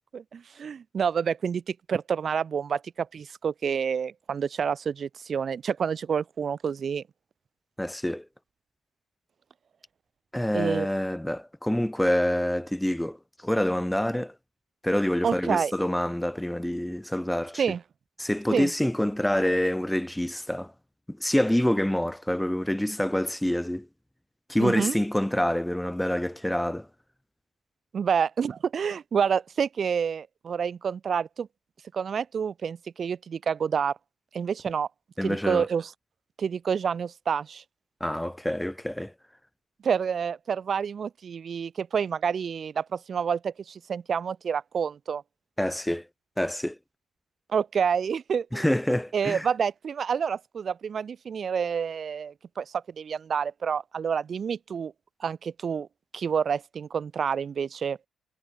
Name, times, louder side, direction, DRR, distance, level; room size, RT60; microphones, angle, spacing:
voice 1, 0.1-7.0 10.5-10.9 15.2-15.7 17.6-17.8 18.5-18.7 24.6-24.9 27.9-31.5 31.9-34.0 34.3-34.9 35.2-35.9 36.4-37.6 39.8-45.2 47.5-48.7 49.1-54.9 55.2-55.9 56.1-58.0, right 7 dB, 40° right, 7.9 m, -28 dB
voice 2, 7.8-8.3 10.3-13.2 13.4-14.3 14.8-17.6 18.2-20.7 21.1-23.9 24.5-26.9 35.2-35.7 38.0-39.1 45.6-46.1 46.4-46.8 48.5-49.5, left 1 dB, 5° left, 5.5 m, -26 dB
cardioid pair, 125°, 0 cm